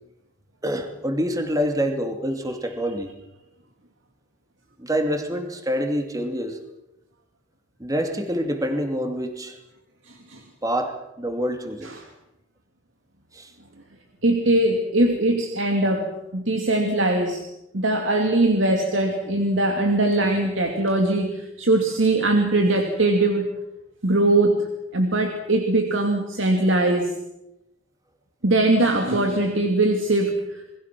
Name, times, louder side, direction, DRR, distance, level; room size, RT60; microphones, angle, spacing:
voice 1, 0.6-3.1 4.8-6.6 7.8-9.6 10.6-11.9 13.3-13.5, equal, 20° right, 5 dB, 2.5 m, -26 dB
voice 2, 10.1-10.4 14.2-17.4 17.7-23.5 24.0-24.6 24.9-27.1 28.4-30.8, right 2 dB, 75° right, 3 dB, 2.6 m, -21 dB
28.5 x 21.0 x 6.1 m, 0.91 s
head